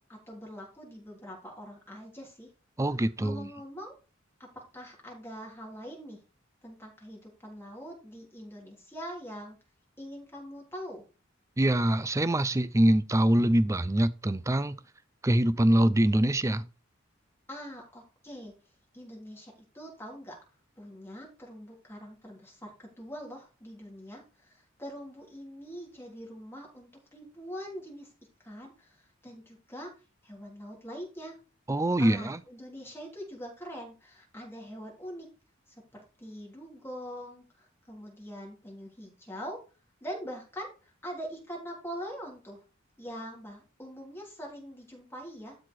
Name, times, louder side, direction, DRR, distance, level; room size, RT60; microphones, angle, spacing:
voice 1, 0.0-2.5 3.2-3.9 4.5-6.2 6.6-9.6 10.0-11.0 17.5-18.5 18.9-20.4 20.8-28.1 28.4-29.9 30.2-31.4 32.0-35.3 35.9-39.6 40.0-42.6 43.0-45.6, equal, 10° left, 3.4 m, -43 dB
voice 2, 2.8-3.5 11.6-14.8 15.2-16.6 31.7-32.4, right 1 dB, 15° right, 0.4 m, -24 dB
12.0 x 4.2 x 4.7 m
head